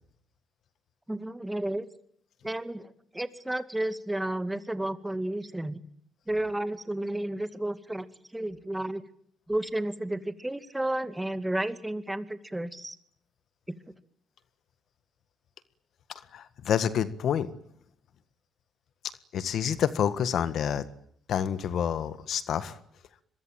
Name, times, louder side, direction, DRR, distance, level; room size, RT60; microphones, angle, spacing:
voice 1, 1.1-1.9 2.4-5.8 6.3-8.1 8.3-9.0 9.5-13.0, right 1 dB, 10° right, 12 dB, 2.3 m, -32 dB
voice 2, 16.1-17.5 19.3-20.8 21.3-22.8, left 8 dB, 70° left, 13 dB, 1.6 m, -28 dB
25.5 x 23.0 x 9.1 m, 0.66 s
cardioid pair, 90°, 0 cm